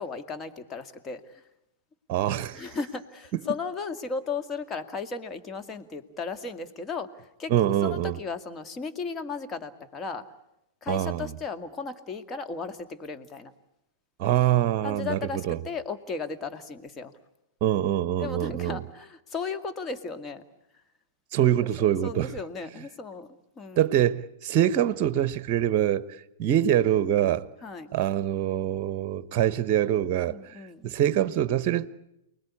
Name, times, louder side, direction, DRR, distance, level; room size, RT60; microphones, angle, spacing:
voice 1, 0.0-1.4 2.5-10.2 10.8-13.5 14.8-17.1 18.2-20.4 21.4-21.5 21.8-23.3 23.6-23.9 27.6-27.9 30.3-31.0, left 4 dB, 20° left, 2.1 m, -35 dB
voice 2, 2.1-2.7 7.5-8.2 10.9-11.3 14.2-15.6 17.6-18.8 21.3-22.3 23.8-26.1 26.4-27.5 27.9-31.9, right 11 dB, 40° right, 1.0 m, -24 dB
29.0 x 20.5 x 8.5 m
figure-of-eight pair, 105°, 0 cm